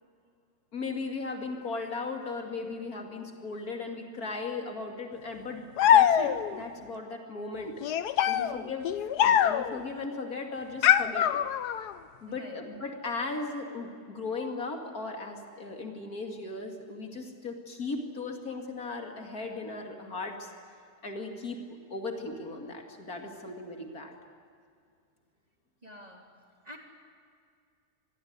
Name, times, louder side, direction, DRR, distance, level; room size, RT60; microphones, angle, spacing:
voice 1, 0.7-5.7 5.9-7.7 8.3-8.9 9.1-11.4 12.2-20.5 21.0-24.1, left 3 dB, 65° left, 4 dB, 3.0 m, -37 dB
sound 1, 5.8-6.6 7.8-9.8 10.8-11.9, left 10 dB, 85° left, 1.4 m, -23 dB
voice 2, 8.3-8.7 12.3-12.6 25.8-26.3 26.6-26.8, equal, 25° right, 2 dB, 3.3 m, -47 dB
26.0 x 20.0 x 9.7 m, 2.3 s
omnidirectional pair, 1.7 m